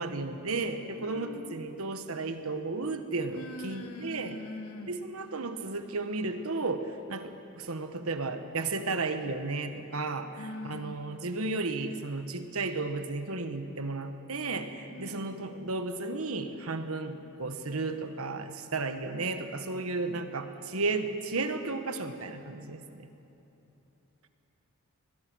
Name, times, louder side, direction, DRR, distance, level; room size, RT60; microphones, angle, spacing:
voice 1, 0.0-4.4 4.9-23.1, right 3 dB, 70° right, 8 dB, 1.3 m, -34 dB
voice 2, 1.0-1.6 3.3-5.0 10.4-11.0 14.9-15.2, left 1 dB, 75° left, 4 dB, 2.0 m, -42 dB
22.0 x 21.0 x 6.3 m, 3.0 s
head